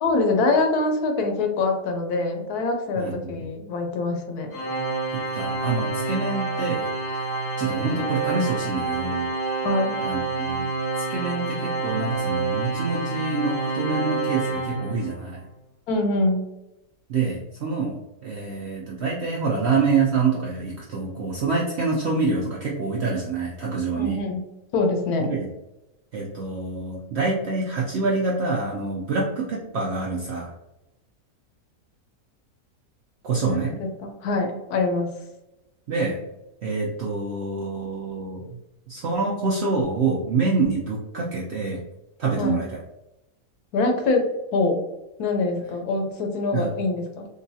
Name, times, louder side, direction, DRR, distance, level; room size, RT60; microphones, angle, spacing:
voice 1, 0.0-4.5 9.6-10.0 15.9-16.5 24.0-24.4 24.7-25.3 33.5-35.1 42.4-42.6 43.7-44.3 44.5-44.8 45.2-47.3, left 3 dB, 80° left, 4 dB, 1.2 m, -24 dB
voice 2, 3.0-3.4 5.1-9.3 10.0-10.7 11.0-15.4 17.1-24.2 25.2-25.5 26.1-30.5 33.2-33.7 35.9-36.2 36.6-38.6 38.9-41.8 42.2-42.8 46.5-46.7, right 4 dB, 70° right, -3 dB, 0.6 m, -26 dB
Organ, 4.5-15.3, right 3 dB, 50° left, 0.7 m, -28 dB
3.8 x 2.2 x 2.6 m, 0.94 s
omnidirectional pair, 1.7 m